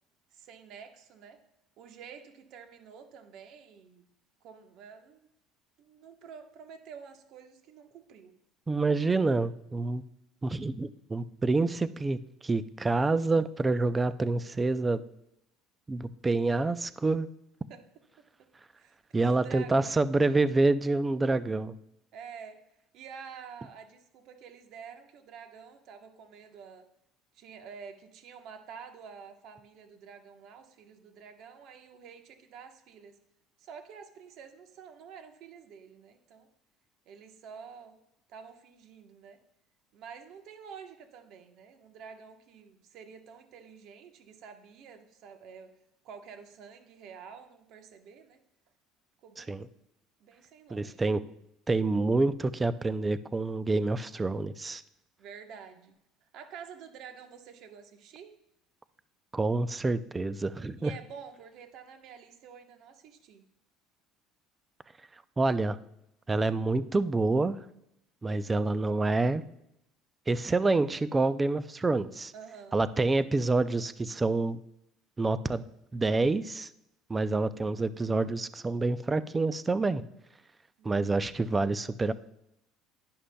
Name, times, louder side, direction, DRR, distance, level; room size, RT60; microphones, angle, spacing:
voice 1, 0.3-1.4 1.8-4.0 4.4-5.3 5.8-8.3 17.7-17.8 18.8-20.0 22.1-22.6 22.9-26.8 27.3-33.2 33.6-36.5 37.1-37.9 38.3-39.4 39.9-45.7 46.0-48.4 49.2-49.8 50.2-51.0 55.2-56.0 56.3-58.3 60.8-63.4 72.3-72.8 80.8-81.3, right 6 dB, 55° right, 6 dB, 1.1 m, -49 dB
voice 2, 8.7-10.0 10.4-15.0 15.9-17.3 19.1-21.7 49.4-49.7 50.7-51.2 51.7-54.8 59.3-60.9 65.4-65.8 66.3-67.6 68.2-69.4 70.3-72.3 72.7-74.6 75.2-75.6 75.9-76.7 77.1-80.0 80.8-82.1, right 3 dB, 15° right, 14 dB, 0.4 m, -27 dB
11.0 x 10.0 x 2.2 m, 0.81 s
cardioid pair, 140°, 0 cm